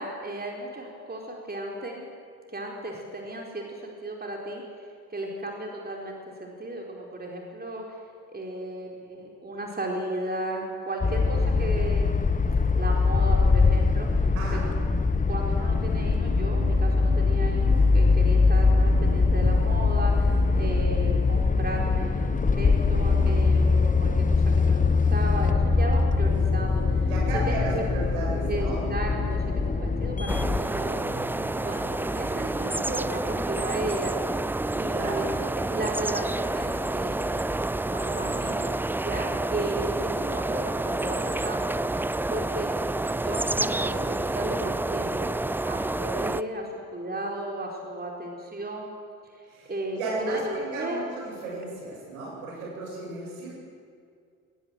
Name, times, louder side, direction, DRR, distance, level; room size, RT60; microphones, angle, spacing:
voice 1, 0.0-2.1 2.5-4.6 5.1-7.8 8.3-12.2 12.7-14.3 14.6-14.7 15.3-22.3 22.5-27.1 27.5-27.8 28.4-34.3 34.7-37.5 37.9-38.8 39.0-42.7 43.2-45.3 45.6-48.9 49.3-51.0, right 1 dB, 20° right, 0 dB, 4.3 m, -35 dB
sound 1, 11.0-30.6, left 4 dB, 20° left, 1.1 m, -22 dB
sound 2, 15.2-33.6, right 4 dB, 55° right, 3.4 m, -44 dB
voice 2, 27.1-28.8 34.9-35.3 49.5-53.5, right 2 dB, 75° right, -3 dB, 7.8 m, -34 dB
sound 3, 30.3-46.4, right 2 dB, 5° right, 0.5 m, -29 dB
22.5 x 18.5 x 7.7 m, 2.3 s
figure-of-eight pair, 45°, 42 cm